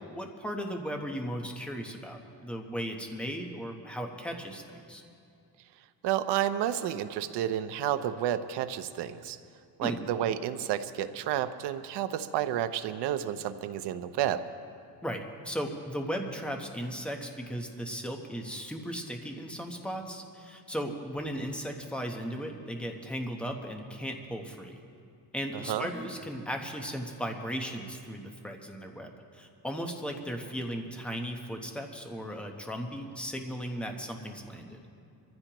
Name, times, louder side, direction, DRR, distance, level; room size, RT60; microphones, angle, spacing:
voice 1, 0.0-5.0 9.8-10.0 15.0-24.8 25.3-34.9, equal, 5° left, 3 dB, 1.0 m, -36 dB
voice 2, 6.0-9.4 9.8-14.4 25.7-25.9, right 11 dB, 75° right, 10 dB, 0.8 m, -30 dB
23.5 x 15.0 x 3.0 m, 2.4 s
cardioid pair, 160°, 41 cm